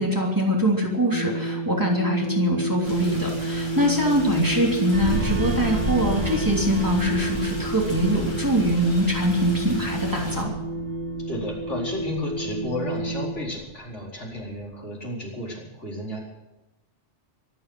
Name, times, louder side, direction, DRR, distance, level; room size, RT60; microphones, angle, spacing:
voice 1, 0.0-10.5, equal, 15° right, -1 dB, 3.1 m, -23 dB
sound 1, 1.1-13.3, right 1 dB, 40° right, 1.9 m, -31 dB
Rain, 2.8-10.4, left 1 dB, 60° left, 4.1 m, -38 dB
sound 2, 4.9-14.0 14.3-14.6, right 2 dB, 60° right, 2.4 m, -34 dB
voice 2, 11.2-16.2, left 1 dB, 75° left, -2 dB, 4.9 m, -32 dB
24.5 x 9.0 x 6.2 m, 1.0 s
omnidirectional pair, 1.2 m